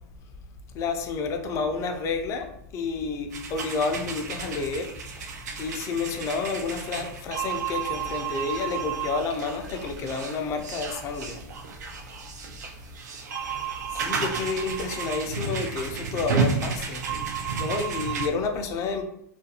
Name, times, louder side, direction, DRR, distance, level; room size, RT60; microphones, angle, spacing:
voice 1, 0.7-4.9 5.6-11.4 13.9-19.0, left 4 dB, 35° left, 5 dB, 0.4 m, -30 dB
sound 1, 3.3-18.3, right 6 dB, 85° right, 0.5 m, -32 dB
2.4 x 2.2 x 2.8 m, 0.75 s
hypercardioid pair, 125°, 9 cm